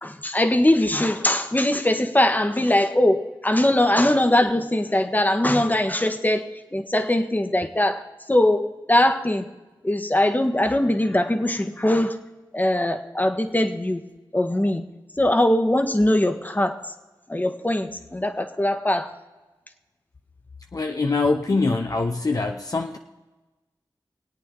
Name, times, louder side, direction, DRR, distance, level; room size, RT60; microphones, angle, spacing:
voice 1, 0.0-8.0 8.3-9.5 9.8-12.2 12.5-14.0 14.3-14.9 15.2-16.8 17.3-19.1, left 1 dB, 20° left, 8 dB, 1.3 m, -21 dB
voice 2, 20.7-23.0, left 3 dB, 45° left, 4 dB, 0.7 m, -23 dB
21.5 x 8.5 x 3.8 m, 1.2 s
cardioid pair, 40°, 8 cm